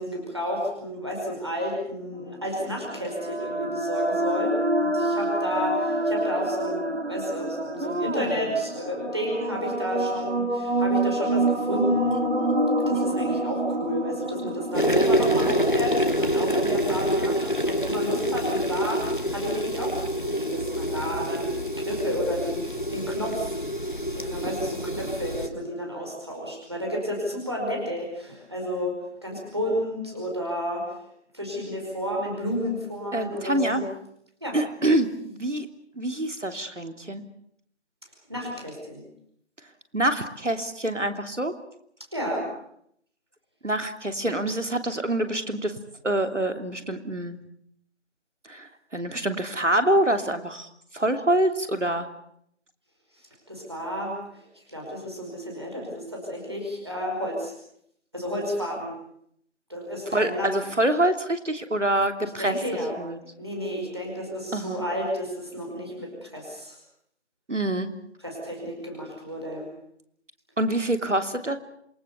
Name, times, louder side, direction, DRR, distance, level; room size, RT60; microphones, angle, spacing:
voice 1, 0.0-12.3 12.8-23.6 24.1-28.9 29.2-30.8 31.3-33.8 34.4-34.6 38.3-39.0 42.1-42.4 53.2-57.5 58.1-58.9 59.7-60.5 62.2-63.0 63.4-66.8 68.2-69.7, equal, 20° right, -1 dB, 5.1 m, -31 dB
sound 1, 2.4-16.5, right 2 dB, 60° right, 3.1 m, -27 dB
voice 2, 7.8-8.3 12.9-13.0 33.1-33.8 34.5-35.7 36.0-37.2 39.9-41.5 43.6-45.8 46.0-47.4 48.4-52.1 60.1-62.5 63.0-63.2 64.5-64.8 67.5-67.9 70.6-71.6, right 1 dB, 85° right, 7 dB, 3.1 m, -26 dB
sound 2, 14.7-25.5, equal, 45° left, 1.6 m, -26 dB
27.5 x 20.0 x 6.9 m, 0.71 s
figure-of-eight pair, 180°, 36 cm